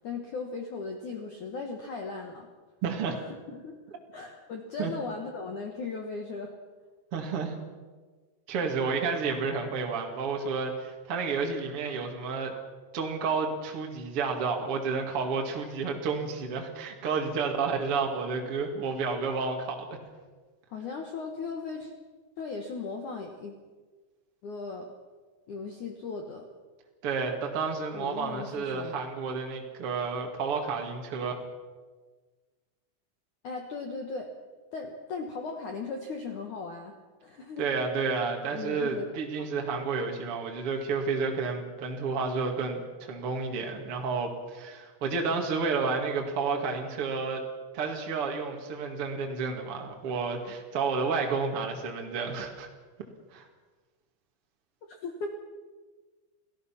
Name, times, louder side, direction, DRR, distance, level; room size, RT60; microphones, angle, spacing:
voice 1, 0.0-2.5 3.1-3.7 4.1-6.5 20.7-21.9 22.4-23.6 24.4-24.9 25.5-26.5 27.9-29.0 33.4-34.3 34.7-36.9 37.2-37.7 38.5-39.1 45.3-45.4 55.0-55.4, left 4 dB, 70° left, 3 dB, 1.9 m, -37 dB
voice 2, 2.8-3.1 4.8-4.9 7.1-7.6 8.5-12.5 12.9-19.9 27.0-31.3 37.6-47.4 47.7-52.7 53.3-53.5, right 4 dB, 50° right, 1 dB, 1.8 m, -31 dB
29.5 x 17.0 x 5.9 m, 1.4 s
omnidirectional pair, 5.9 m